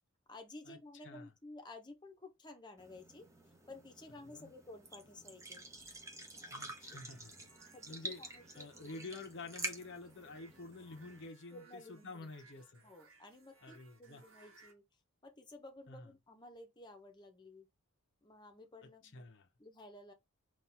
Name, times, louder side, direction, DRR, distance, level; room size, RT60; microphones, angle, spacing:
voice 1, 0.3-3.3 3.7-5.6 6.3-6.7 7.6-9.2 11.5-12.3 12.8-14.8 15.2-17.7 18.2-19.3 19.6-20.1, left 2 dB, 20° left, 0.9 m, -54 dB
sound 1, 2.8-11.3, right 2 dB, 15° right, 0.7 m, -48 dB
voice 2, 6.5-7.5 7.9-8.2 8.5-12.9 13.6-14.2 15.9-16.1 19.1-19.5, left 3 dB, 55° left, 0.8 m, -49 dB
sound 2, 6.7-14.7, right 3 dB, 65° right, 1.4 m, -64 dB
4.3 x 2.5 x 3.5 m
head